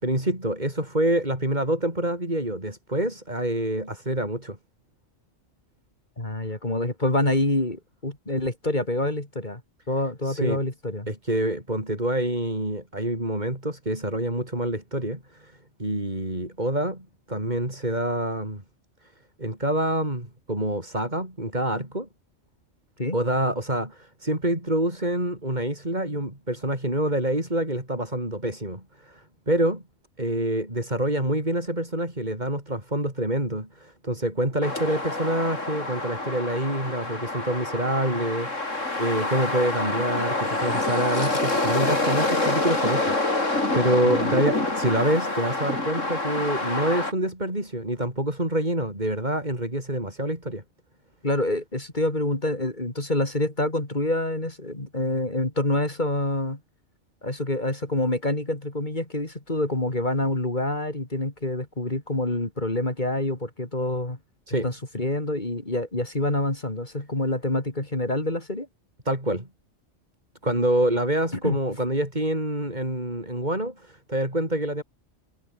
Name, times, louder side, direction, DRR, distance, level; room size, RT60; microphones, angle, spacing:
voice 1, 0.0-4.6 10.2-10.6 11.1-18.6 19.4-22.1 23.1-29.8 30.2-50.6 64.5-64.7 69.0-69.5 70.4-74.8, right 1 dB, 35° right, 6.5 m, -27 dB
voice 2, 6.2-9.6 9.9-11.1 23.0-23.2 44.0-44.3 51.2-56.6 57.2-64.2 64.6-68.7 71.4-71.6, left 1 dB, 35° left, 3.9 m, -27 dB
sound 1, 34.6-47.1, left 2 dB, 80° left, 5.6 m, -27 dB
omnidirectional pair, 1.3 m